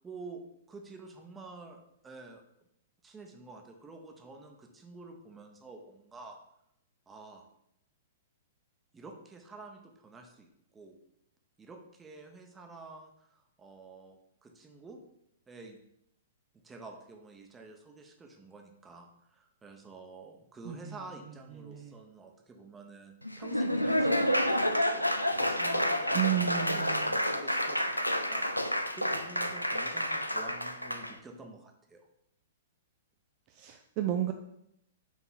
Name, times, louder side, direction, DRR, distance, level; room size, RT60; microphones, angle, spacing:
voice 1, 0.0-2.4 3.0-6.4 7.1-7.5 8.9-10.5 10.7-10.9 11.6-15.0 15.5-15.8 16.6-25.1 25.4-32.0, right 3 dB, 15° right, 3 dB, 0.9 m, -49 dB
voice 2, 20.6-21.0 21.6-21.9 26.1-27.1 33.5-34.3, right 12 dB, 35° right, 6 dB, 0.4 m, -32 dB
Laughter / Applause, 23.2-31.1, equal, 90° left, 0.4 m, -29 dB
6.0 x 4.0 x 4.1 m, 0.78 s
figure-of-eight pair, 110°, 0 cm